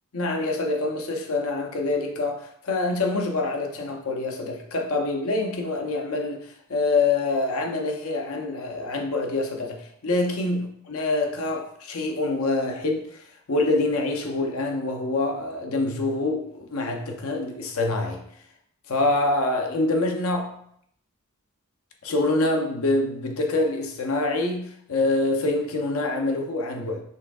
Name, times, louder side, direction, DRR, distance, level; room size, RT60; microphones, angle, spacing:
voice 1, 0.1-18.2 18.9-20.5 22.0-27.0, left 2 dB, 75° left, 0.6 m, -26 dB
5.4 x 3.5 x 2.3 m
head